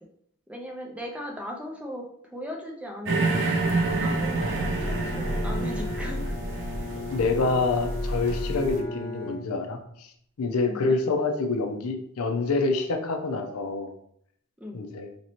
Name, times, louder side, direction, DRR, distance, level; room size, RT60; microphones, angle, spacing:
voice 1, 0.5-3.4 4.0-6.3 10.6-11.0 14.6-14.8, left 1 dB, 5° right, 1 dB, 0.4 m, -38 dB
sound 1, 3.1-8.7, right 3 dB, 55° right, 0.6 m, -28 dB
sound 2, 3.6-8.8, equal, 90° right, 1.4 m, -34 dB
Bowed string instrument, 4.6-10.0, left 3 dB, 20° left, 0.9 m, -37 dB
voice 2, 7.1-10.1 10.4-13.9 14.7-15.1, left 3 dB, 70° left, 5 dB, 0.5 m, -27 dB
2.9 x 2.7 x 2.9 m, 0.69 s
head